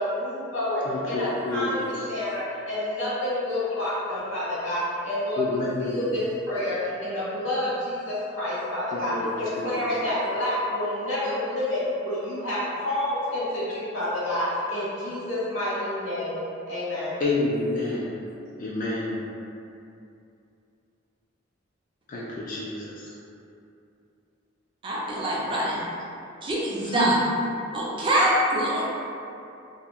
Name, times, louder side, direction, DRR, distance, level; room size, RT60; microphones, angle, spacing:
voice 1, 0.0-5.4 5.8-9.1 9.4-16.4 16.7-17.2, left 1 dB, 80° left, -10 dB, 1.2 m, -28 dB
voice 2, 0.9-2.0 5.4-6.1 8.9-9.3 9.6-10.0 17.2-18.1 18.6-19.2 22.1-23.2 26.8-27.1, left 2 dB, 40° left, -6 dB, 0.3 m, -29 dB
voice 3, 24.8-25.8 26.4-27.1 27.7-28.9, right 1 dB, 25° right, -6 dB, 0.4 m, -24 dB
2.8 x 2.6 x 2.4 m, 2.6 s
head